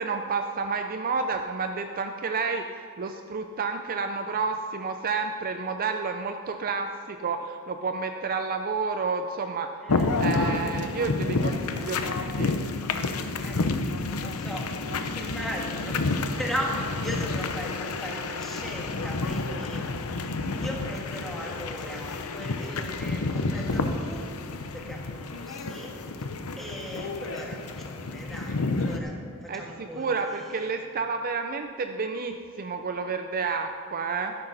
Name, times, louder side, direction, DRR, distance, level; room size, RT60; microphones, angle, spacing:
voice 1, 0.0-9.7 10.2-12.6 29.5-34.3, right 4 dB, 40° right, 6 dB, 0.5 m, -30 dB
voice 2, 9.8-10.3 13.4-14.7 15.1-16.0 16.3-19.9 20.6-24.3 24.7-30.7, equal, ahead, -2 dB, 1.8 m, -38 dB
sound 1, 9.9-29.0, left 3 dB, 70° left, 0.8 m, -30 dB
13.0 x 11.0 x 4.1 m, 2.4 s
head